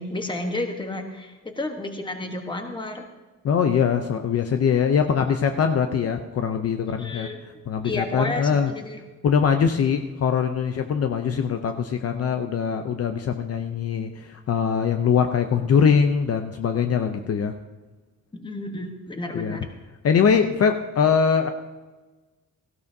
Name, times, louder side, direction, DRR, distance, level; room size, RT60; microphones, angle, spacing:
voice 1, 0.0-3.0 7.0-7.4 7.8-9.0 18.3-19.7, left 2 dB, 15° left, 4 dB, 1.2 m, -31 dB
voice 2, 3.4-7.3 7.7-8.7 9.2-17.5 19.3-19.6 20.0-21.5, left 7 dB, 50° left, 6 dB, 0.6 m, -22 dB
17.0 x 15.5 x 2.7 m, 1.2 s
wide cardioid pair, 170°, 31 cm